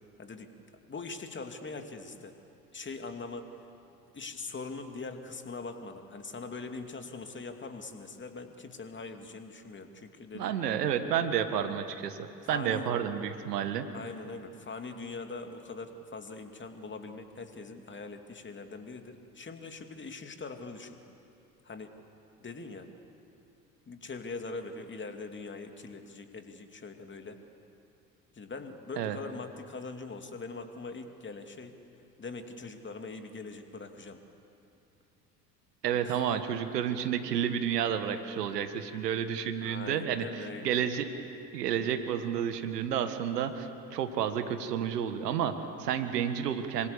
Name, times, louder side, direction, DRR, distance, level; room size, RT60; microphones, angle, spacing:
voice 1, 0.2-0.5 0.9-2.4 2.7-3.5 4.1-10.5 12.5-12.9 13.9-21.0 21.6-22.0 22.4-22.9 23.9-27.4 28.3-31.7 32.2-34.2 36.0-36.4 39.6-40.8, left 3 dB, 20° left, 6 dB, 2.6 m, -42 dB
voice 2, 10.3-13.9 29.0-29.2 35.8-41.1 41.5-46.9, right 9 dB, 70° right, 9 dB, 1.8 m, -31 dB
26.5 x 25.0 x 8.2 m, 2.7 s
figure-of-eight pair, 60°, 49 cm